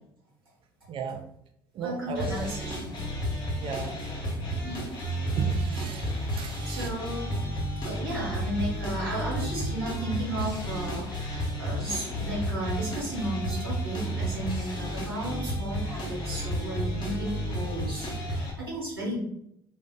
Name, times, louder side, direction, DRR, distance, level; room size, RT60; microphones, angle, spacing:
voice 1, 0.9-1.3 1.7-2.6 3.6-4.0 4.6-6.9, right 5 dB, 45° right, 5 dB, 0.5 m, -35 dB
voice 2, 1.8-3.0 4.6-4.8 6.6-7.4 7.8-19.2, right 1 dB, 90° right, -6 dB, 1.2 m, -34 dB
sound 1, 2.2-18.5, equal, 40° left, 1.1 m, -32 dB
2.4 x 2.4 x 3.7 m, 0.75 s
hypercardioid pair, 60°, 12 cm